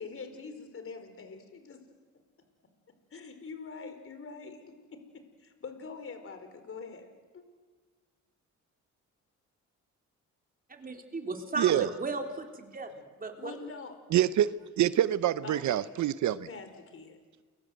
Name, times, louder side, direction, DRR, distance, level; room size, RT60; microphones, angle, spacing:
voice 1, 0.0-1.8 3.1-4.6 4.9-5.0 5.4-7.4 13.4-13.9 15.4-15.9 16.5-17.2, left 4 dB, 45° left, 8 dB, 4.6 m, -44 dB
voice 2, 10.7-13.5, right 3 dB, 30° right, 4 dB, 4.0 m, -36 dB
voice 3, 11.6-11.9 14.1-16.5, right 11 dB, 70° right, 16 dB, 0.9 m, -26 dB
29.0 x 23.0 x 7.9 m, 1.4 s
cardioid pair, 90°, 30 cm